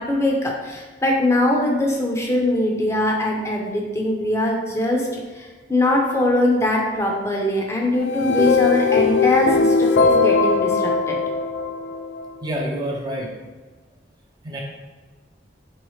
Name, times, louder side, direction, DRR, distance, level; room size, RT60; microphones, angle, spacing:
voice 1, 0.0-11.2, left 1 dB, 15° left, -1 dB, 0.6 m, -22 dB
sound 1, 8.0-12.3, left 4 dB, 80° left, 0.3 m, -19 dB
voice 2, 12.4-13.3 14.4-14.6, right 1 dB, 25° right, -1 dB, 0.5 m, -27 dB
3.5 x 3.1 x 4.8 m, 1.4 s
head